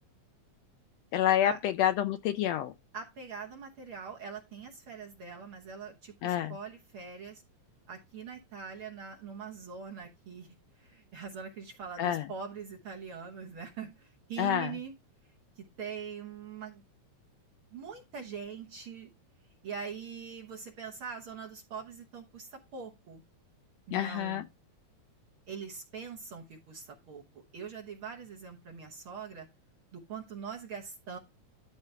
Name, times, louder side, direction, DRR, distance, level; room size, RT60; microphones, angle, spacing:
voice 1, 1.1-2.7 6.2-6.5 12.0-12.3 14.4-14.7 23.9-24.4, left 11 dB, 80° left, 1.5 m, -28 dB
voice 2, 2.9-7.4 7.9-14.9 15.6-16.8 17.7-19.1 19.6-23.2 23.9-24.4 25.5-29.5 29.9-31.2, right 6 dB, 55° right, 1.7 m, -43 dB
12.5 x 4.4 x 3.3 m
omnidirectional pair, 3.4 m